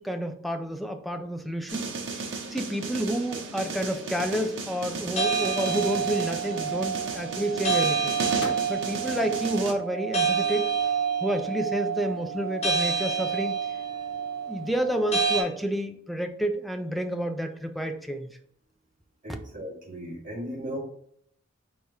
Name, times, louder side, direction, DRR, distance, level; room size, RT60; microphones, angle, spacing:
voice 1, 0.0-1.9 2.2-2.3 2.5-8.2 8.7-10.7 11.2-13.6 14.5-18.3, right 1 dB, ahead, 5 dB, 0.4 m, -29 dB
sound 1, 1.7-9.7, right 4 dB, 70° right, 0.8 m, -35 dB
Microwave oven, 3.7-10.6 10.8-12.7, left 1 dB, 65° left, 1.5 m, -48 dB
sound 2, 5.2-15.4, right 6 dB, 35° left, 1.0 m, -28 dB
voice 2, 19.2-20.8, equal, 45° right, -4 dB, 1.8 m, -36 dB
4.8 x 3.4 x 2.8 m, 0.66 s
head